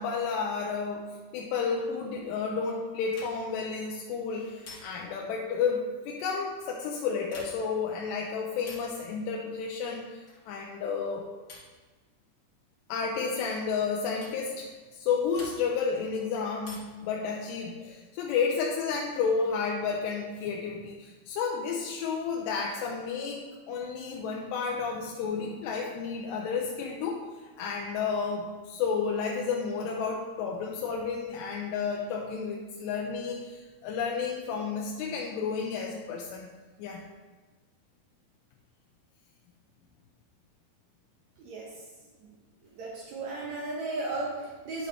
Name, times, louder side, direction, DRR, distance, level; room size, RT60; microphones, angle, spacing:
voice 1, 0.0-11.2 12.9-23.4 23.7-27.2 27.6-36.5 36.8-37.0, left 5 dB, 85° left, -2 dB, 2.8 m, -31 dB
sound 1, 3.1-3.6 4.6-5.2 7.2-7.8 8.6-9.0 10.2-10.6 11.5-11.8 13.1-13.4 14.2-14.4 15.3-15.9 16.6-17.1 18.6-19.2, left 2 dB, 45° left, 1.6 m, -49 dB
voice 2, 41.4-41.8 42.2-42.3 42.6-44.9, right 2 dB, 85° right, -3 dB, 1.5 m, -35 dB
10.5 x 6.4 x 3.3 m, 1.3 s
omnidirectional pair, 4.9 m